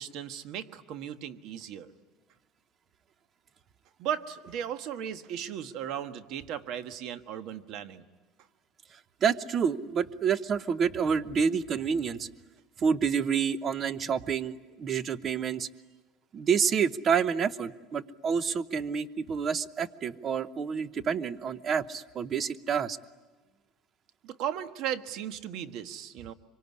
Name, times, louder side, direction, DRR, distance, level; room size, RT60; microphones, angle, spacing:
voice 1, 0.0-1.9 4.0-8.0 24.2-26.3, right 9 dB, 60° right, 9 dB, 1.4 m, -36 dB
voice 2, 9.2-12.3 12.8-15.7 16.3-23.0, right 6 dB, 35° right, 15 dB, 0.9 m, -28 dB
25.5 x 24.5 x 9.7 m, 1.3 s
cardioid pair, 130°, 0 cm